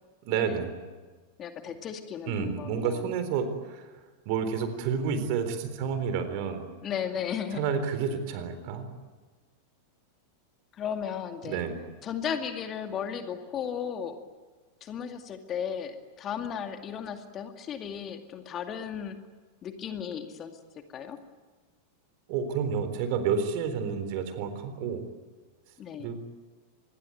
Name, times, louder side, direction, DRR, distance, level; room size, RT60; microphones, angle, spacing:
voice 1, 0.2-0.7 2.3-6.7 7.5-8.9 11.4-11.8 22.3-25.1 26.0-26.2, right 6 dB, 45° right, 10 dB, 3.9 m, -30 dB
voice 2, 1.4-3.0 6.8-7.6 10.7-11.6 12.0-14.2 14.8-19.2 19.6-20.5 20.9-21.2 25.8-26.1, left 8 dB, 30° left, 6 dB, 2.3 m, -35 dB
26.0 x 21.0 x 9.4 m, 1.4 s
figure-of-eight pair, 90°, 0 cm